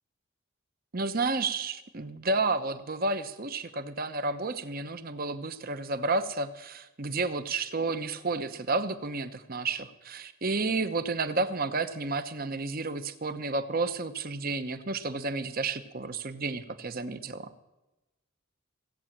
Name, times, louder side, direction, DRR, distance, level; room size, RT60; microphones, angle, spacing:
voice 1, 0.9-17.5, right 3 dB, 45° right, 11 dB, 1.0 m, -31 dB
17.0 x 8.8 x 7.4 m, 1.0 s
head